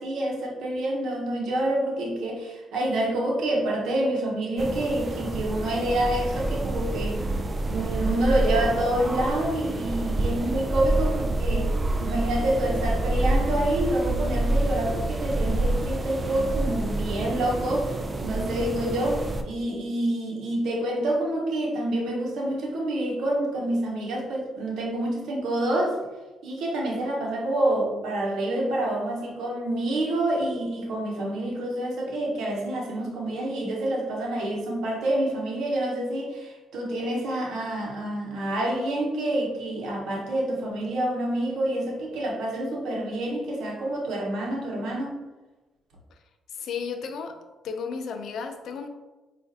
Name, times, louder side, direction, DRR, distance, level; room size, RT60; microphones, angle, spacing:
voice 1, 0.0-7.2 7.6-11.7 12.0-18.0 18.2-26.0 26.4-45.2, right 1 dB, 75° right, -1 dB, 0.9 m, -27 dB
sound 1, 4.6-19.4, right 1 dB, 30° right, 0.4 m, -27 dB
voice 2, 46.5-47.4 47.6-48.9, left 6 dB, 70° left, 7 dB, 0.4 m, -33 dB
4.9 x 2.4 x 2.6 m, 1.2 s
cardioid pair, 90°, 0 cm